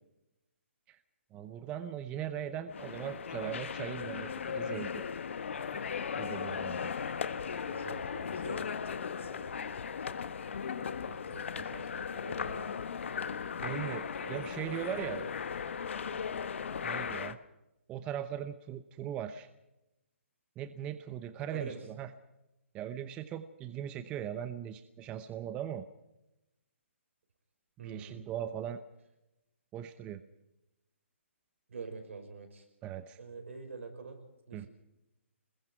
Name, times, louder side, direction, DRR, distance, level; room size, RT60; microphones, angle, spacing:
voice 1, 1.3-5.3 5.7-6.9 13.6-15.3 16.0-16.2 16.8-17.4 17.9-19.5 20.6-22.1 22.7-25.8 27.8-28.8 29.7-30.2 32.8-33.2 34.5-34.7, right 10 dB, 15° right, 11 dB, 0.8 m, -39 dB
sound 1, 2.7-17.4, left 6 dB, 65° left, 1.3 m, -37 dB
voice 2, 7.6-8.7 9.2-10.0 10.6-12.7 13.1-14.7 15.1-15.3 21.5-21.8 27.8-28.2 31.7-32.7 33.2-34.2 34.5-34.7, right 4 dB, 75° right, 6 dB, 5.7 m, -47 dB
27.5 x 21.0 x 4.6 m, 0.92 s
hypercardioid pair, 160°, 7 cm